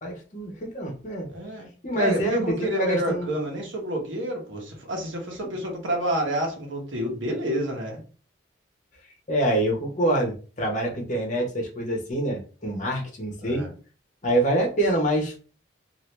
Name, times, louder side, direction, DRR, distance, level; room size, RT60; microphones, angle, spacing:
voice 1, 0.0-1.3 1.8-3.3 9.3-13.6 14.2-15.3, right 1 dB, 40° left, 0 dB, 1.0 m, -26 dB
voice 2, 1.3-1.7 1.9-8.0 13.4-13.7, right 1 dB, 80° right, 0 dB, 1.0 m, -29 dB
2.8 x 2.6 x 3.2 m, 0.37 s
head